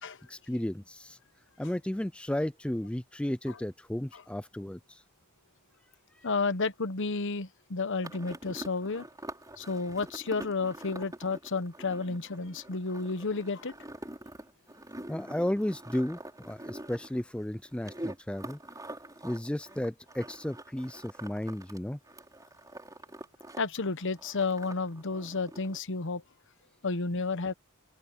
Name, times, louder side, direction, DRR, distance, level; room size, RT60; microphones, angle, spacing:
voice 1, 0.3-1.2 1.6-5.0 15.1-18.6 19.2-22.0, left 1 dB, 5° left, 0.4 m, -33 dB
voice 2, 6.2-9.0 9.6-13.7 23.6-26.2 26.8-27.5, left 4 dB, 60° left, 1.0 m, -31 dB
sound 1, 8.0-21.8 22.1-23.6 23.8-25.8, right 1 dB, 15° right, 5.9 m, -45 dB
open air
head